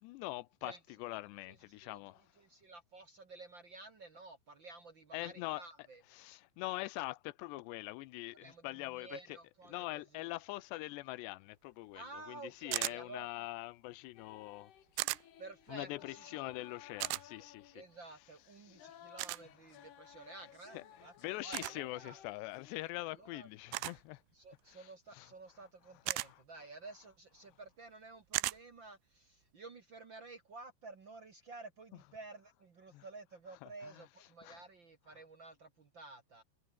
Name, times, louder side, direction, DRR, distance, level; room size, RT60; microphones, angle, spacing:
voice 1, 0.0-0.7 1.0-2.2 5.1-5.6 6.1-9.2 9.7-14.7 15.7-17.8 18.7-18.9 20.7-20.8 21.2-24.2 25.1-25.3 26.2-26.4 32.9-33.0 33.6-33.7 34.4-34.6, left 20 dB, 85° left, 2.8 m, -43 dB
voice 2, 1.5-6.0 8.4-10.3 11.9-13.5 15.4-16.4 17.4-17.5 17.7-22.2 23.1-23.5 24.3-36.4, right 3 dB, 65° right, 1.1 m, -52 dB
sound 1, 12.7-13.0 15.0-15.2 17.0-17.2 19.2-19.4 21.5-21.8 23.7-24.0 26.1-26.3 28.3-28.6, right 22 dB, 90° right, 3.0 m, -35 dB
sound 2, 14.2-22.9, left 10 dB, 65° left, 4.0 m, -59 dB
omnidirectional pair, 5.1 m